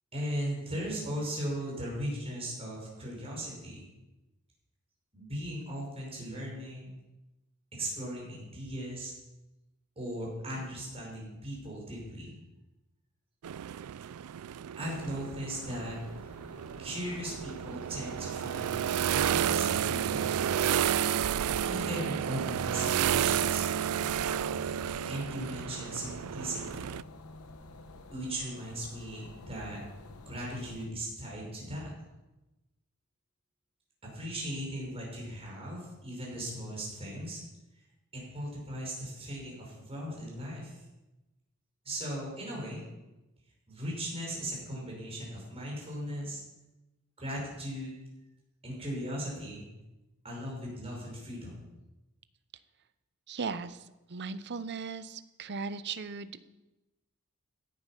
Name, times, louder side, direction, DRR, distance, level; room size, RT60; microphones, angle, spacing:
voice 1, 0.1-3.9 5.1-7.0 7.7-9.1 10.0-12.4 14.8-16.0 16.8-20.5 21.6-23.6 25.1-26.9 28.1-29.8 30.1-31.9 34.0-37.4 38.1-40.8 41.8-42.8 43.7-46.4 47.2-47.9 48.6-49.7 50.2-51.6, equal, 30° right, -3 dB, 5.7 m, -38 dB
sound 1, 13.4-27.0, right 9 dB, 85° right, 0.4 m, -31 dB
sound 2, 14.9-30.9, left 3 dB, 75° left, 1.1 m, -50 dB
voice 2, 53.3-53.8 54.1-56.4, right 4 dB, 50° right, 13 dB, 0.8 m, -37 dB
16.5 x 9.8 x 5.8 m, 1.0 s
head